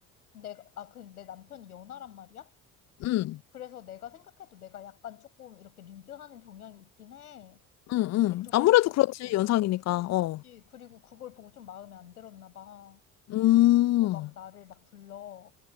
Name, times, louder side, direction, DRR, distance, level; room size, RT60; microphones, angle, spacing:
voice 1, 0.3-2.5 3.5-7.6 8.3-8.7 9.2-9.4 9.9-13.0 14.0-15.5, left 11 dB, 80° left, 6.9 m, -46 dB
voice 2, 3.0-3.4 7.9-10.4 13.3-14.3, left 16 dB, 40° left, 0.5 m, -23 dB
figure-of-eight pair, 55°, 44 cm